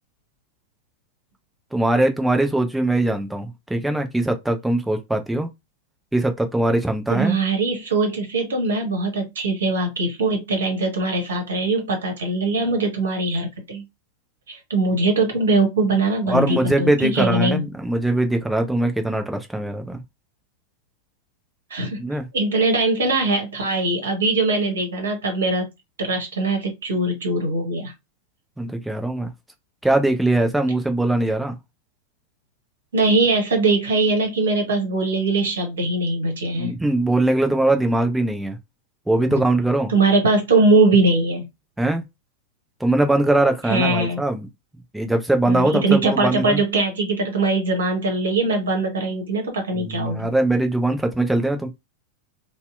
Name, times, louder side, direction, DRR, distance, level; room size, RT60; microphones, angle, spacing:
voice 1, 1.7-5.5 6.1-7.4 16.3-20.0 22.0-22.3 28.6-29.3 29.8-31.6 36.5-38.6 39.1-39.9 41.8-42.0 42.8-44.5 44.9-46.6 49.8-51.7, right 2 dB, 5° right, 0.5 m, -21 dB
voice 2, 7.1-13.8 14.5-17.6 21.7-22.0 22.3-25.7 26.0-27.9 32.9-36.7 39.3-39.4 39.9-41.5 43.6-44.2 45.5-50.3, right 2 dB, 65° right, 0.9 m, -21 dB
2.7 x 2.1 x 2.3 m
figure-of-eight pair, 90°, 0 cm